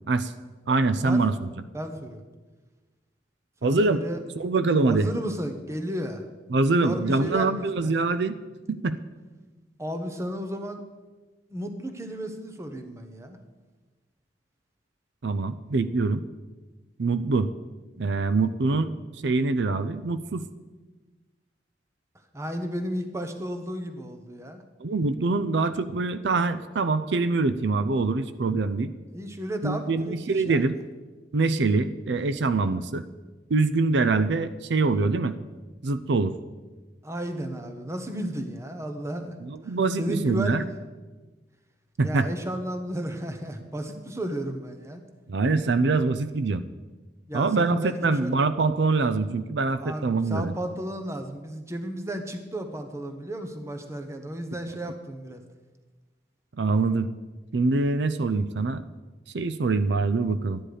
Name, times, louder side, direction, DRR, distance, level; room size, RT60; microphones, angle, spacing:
voice 1, 0.7-1.5 3.6-4.0 4.4-5.1 6.5-8.4 8.7-9.0 15.2-16.2 17.0-17.5 18.0-18.9 19.2-20.5 24.8-28.9 29.6-30.8 31.3-33.0 33.5-35.3 35.8-36.3 39.4-40.6 42.0-42.3 45.3-46.6 47.3-50.5 56.6-57.1 57.5-58.8 59.3-60.6, right 3 dB, 85° right, 12 dB, 0.5 m, -24 dB
voice 2, 1.7-2.2 3.6-4.2 4.9-6.2 6.7-7.9 9.8-10.8 11.5-13.4 22.3-24.6 29.1-30.2 30.5-30.6 37.0-39.4 39.6-40.7 42.0-45.0 47.3-48.3 49.8-55.4, equal, 15° right, 5 dB, 1.1 m, -33 dB
12.5 x 10.0 x 5.0 m, 1.3 s
head